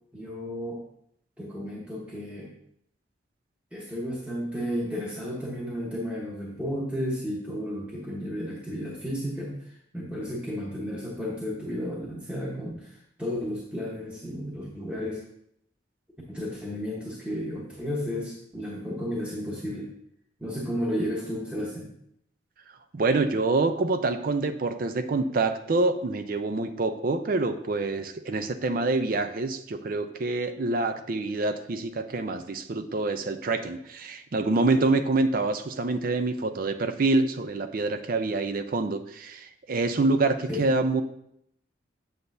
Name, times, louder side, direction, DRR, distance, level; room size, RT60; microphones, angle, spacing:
voice 1, 0.1-0.8 1.4-2.5 3.7-15.3 16.3-19.9 20.4-21.9 40.5-40.6, equal, 5° right, -5 dB, 1.1 m, -33 dB
voice 2, 22.9-41.0, right 3 dB, 50° right, 9 dB, 0.5 m, -26 dB
7.9 x 6.8 x 2.6 m, 0.72 s
head